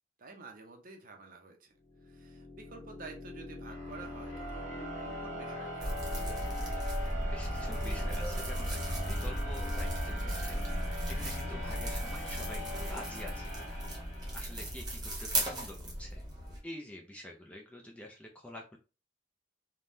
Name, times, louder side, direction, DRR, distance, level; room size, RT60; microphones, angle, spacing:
voice 1, 0.2-1.7 2.0-6.5, right 4 dB, 45° right, 3 dB, 0.6 m, -50 dB
sound 1, 1.8-14.7, equal, 40° left, 0.9 m, -41 dB
sound 2, 5.8-16.6, equal, 20° right, 0.9 m, -36 dB
voice 2, 7.0-10.6 11.1-13.8 14.3-16.2 16.6-18.8, left 1 dB, 5° left, -1 dB, 0.3 m, -47 dB
3.4 x 2.2 x 2.6 m, 0.32 s
head